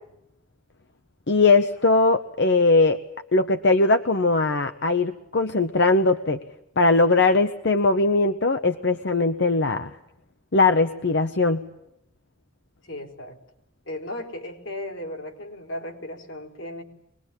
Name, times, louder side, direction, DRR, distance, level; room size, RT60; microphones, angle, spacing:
voice 1, 1.3-3.0 3.3-6.4 6.8-9.9 10.5-11.6, left 3 dB, 65° left, 7 dB, 0.9 m, -20 dB
voice 2, 12.8-13.4 13.9-16.8, left 1 dB, 90° left, 1 dB, 3.9 m, -35 dB
24.0 x 20.5 x 8.9 m, 0.81 s
head